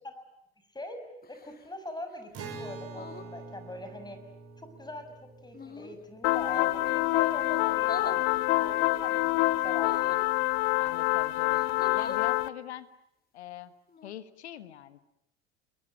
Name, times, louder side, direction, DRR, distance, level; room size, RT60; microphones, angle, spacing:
sound 1, 1.2-1.7 2.9-3.3 5.5-6.0 7.8-8.2 9.7-10.3 11.0-11.1 11.5-12.3 13.9-14.1, left 5 dB, 30° left, 2.5 m, -40 dB
voice 1, 1.3-4.2 4.6-5.1 5.4-8.3 8.5-10.2, left 1 dB, 15° left, 8 dB, 6.6 m, -42 dB
Acoustic guitar, 2.3-7.8, right 4 dB, 45° right, 6.0 m, -46 dB
sound 2, 6.2-12.5, left 19 dB, 65° left, 1.1 m, -26 dB
voice 2, 10.8-12.9 13.3-13.7 14.0-15.0, left 12 dB, 80° left, 13 dB, 1.6 m, -43 dB
30.0 x 22.0 x 9.1 m, 0.80 s
hypercardioid pair, 70°, 33 cm